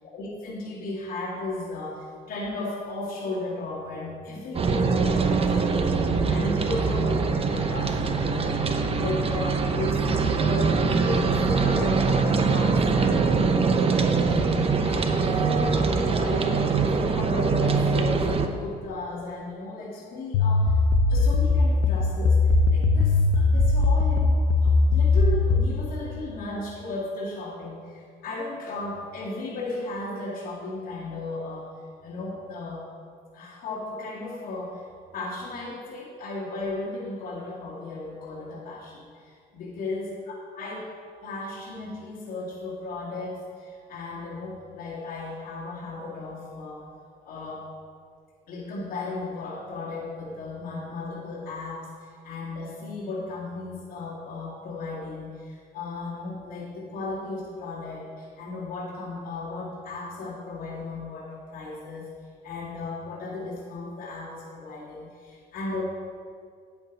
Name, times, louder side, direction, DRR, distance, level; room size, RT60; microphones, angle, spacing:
voice 1, 0.1-8.6 9.0-10.7 11.0-18.3 18.6-20.8 21.1-31.7 32.0-32.9 33.3-34.8 35.1-41.0 41.2-46.8 47.2-47.6 48.5-62.1 62.4-65.8, left 2 dB, 60° left, -8 dB, 2.1 m, -35 dB
sound 1, 4.5-18.5, right 4 dB, 35° right, 0.8 m, -23 dB
sound 2, 20.3-25.7, left 3 dB, 90° left, 0.6 m, -20 dB
9.4 x 8.2 x 4.0 m, 2.2 s
cardioid pair, 110°, 17 cm